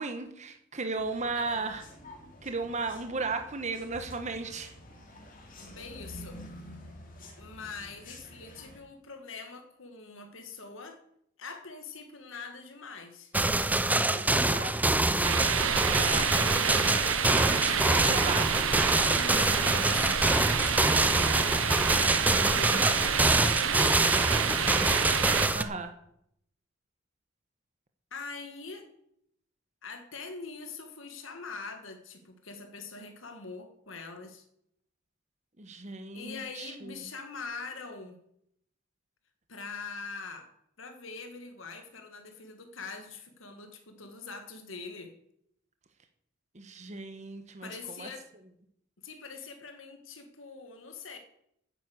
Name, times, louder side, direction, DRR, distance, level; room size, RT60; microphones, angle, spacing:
voice 1, 0.0-1.8 2.4-4.7 14.2-14.7 15.7-16.3 17.3-18.6 25.5-25.9 35.6-37.0 46.5-47.7 48.0-48.1, right 3 dB, 35° right, 7 dB, 1.2 m, -35 dB
sound 1, 1.0-8.8, left 1 dB, 45° left, 2.7 m, -49 dB
voice 2, 1.3-1.7 5.6-6.4 7.4-11.0 11.4-13.3 13.9-14.9 17.3-18.3 19.1-24.9 28.1-28.9 29.8-34.5 36.1-38.2 39.5-40.5 40.8-45.1 47.6-48.3 49.0-51.2, left 4 dB, 75° left, 6 dB, 1.7 m, -43 dB
sound 2, 13.3-25.6, right 2 dB, 10° right, 0.6 m, -25 dB
sound 3, 15.2-25.5, right 7 dB, 80° right, 0.9 m, -29 dB
10.0 x 9.2 x 7.9 m, 0.74 s
head